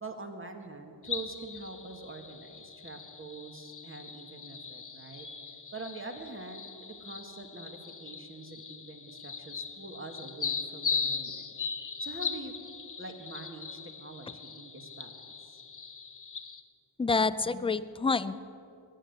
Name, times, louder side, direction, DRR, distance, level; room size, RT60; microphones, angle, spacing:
voice 1, 0.0-5.3 5.7-11.5 12.0-12.5 13.0-15.6, right 3 dB, 25° right, 4 dB, 1.7 m, -44 dB
sound 1, 1.0-16.6, left 5 dB, 40° left, 1.1 m, -39 dB
voice 2, 17.0-18.4, left 4 dB, 15° left, 15 dB, 0.3 m, -28 dB
20.5 x 8.8 x 8.0 m, 2.7 s
wide cardioid pair, 110°, 45 cm